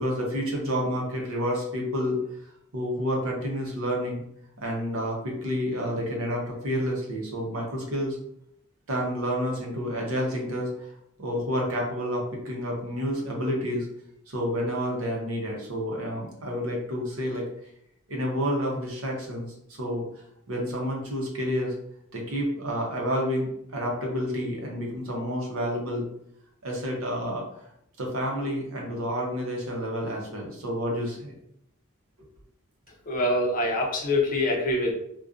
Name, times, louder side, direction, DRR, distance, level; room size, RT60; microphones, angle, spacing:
voice 1, 0.0-2.2 2.7-4.2 4.6-8.2 8.9-10.9 11.2-13.9 14.3-17.5 18.1-20.0 20.5-21.7 22.1-26.1 26.6-27.6 28.0-31.3, equal, 75° right, -1 dB, 0.7 m, -29 dB
voice 2, 33.1-34.9, left 1 dB, 40° left, -2 dB, 0.6 m, -24 dB
2.4 x 2.2 x 2.4 m, 0.74 s
head